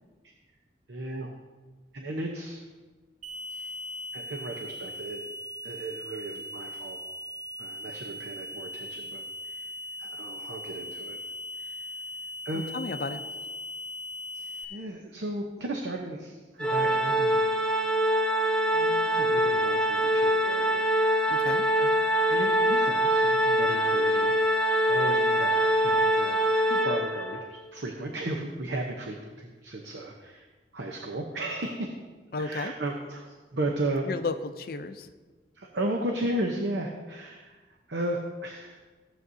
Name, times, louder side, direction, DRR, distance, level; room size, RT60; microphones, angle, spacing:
voice 1, 0.9-1.3 1.9-2.7 3.5-3.7 4.1-5.2 5.6-7.0 7.6-9.7 10.0-11.2 11.6-11.9 12.4-12.7 14.3-17.5 18.7-21.3 21.8-21.9 22.3-24.5 24.9-30.5 30.7-31.9 32.4-34.2 35.5-38.8, right 1 dB, 75° right, 1 dB, 0.9 m, -35 dB
sound 1, 3.2-14.6, left 1 dB, 45° right, 0.7 m, -39 dB
voice 2, 12.5-13.2 21.3-21.7 32.3-32.7 34.0-35.1, left 3 dB, 55° left, 8 dB, 0.5 m, -33 dB
Organ, 16.6-27.5, equal, 5° left, 0.6 m, -24 dB
15.0 x 7.8 x 2.7 m, 1.3 s
head